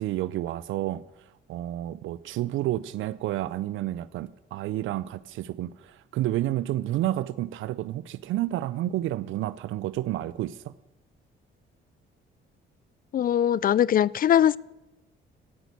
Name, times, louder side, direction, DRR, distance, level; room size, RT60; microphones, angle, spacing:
voice 1, 0.0-10.7, right 14 dB, 80° right, 0.5 m, -30 dB
voice 2, 13.1-14.6, left 10 dB, 45° left, 0.4 m, -21 dB
16.5 x 6.1 x 9.3 m
cardioid pair, 90°, 20 cm